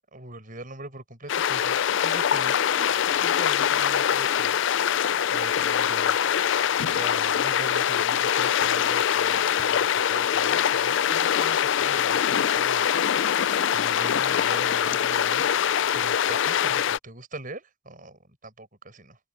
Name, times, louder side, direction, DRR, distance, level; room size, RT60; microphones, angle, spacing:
voice 1, 0.1-4.6 5.3-6.2 6.9-12.9 13.7-15.4 15.9-19.2, right 2 dB, 40° right, 7.6 m, -42 dB
sound 1, 1.3-17.0, left 9 dB, 60° left, 0.4 m, -23 dB
head